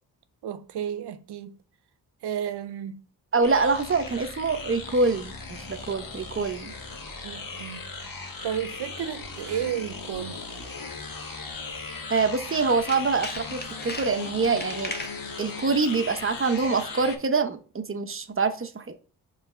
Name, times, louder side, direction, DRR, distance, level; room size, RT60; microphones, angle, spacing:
voice 1, 0.4-1.6 2.2-3.0 7.2-10.4, right 9 dB, 75° right, 0.7 m, -33 dB
voice 2, 3.3-6.7 12.1-14.9 15.4-19.0, right 4 dB, 30° right, 0.8 m, -25 dB
sound 1, 3.4-17.2, left 4 dB, 55° left, 1.5 m, -38 dB
Tools, 12.4-15.2 15.7-16.0 16.3-16.4, left 2 dB, 25° left, 1.0 m, -39 dB
5.8 x 3.3 x 5.5 m
cardioid pair, 55°, 40 cm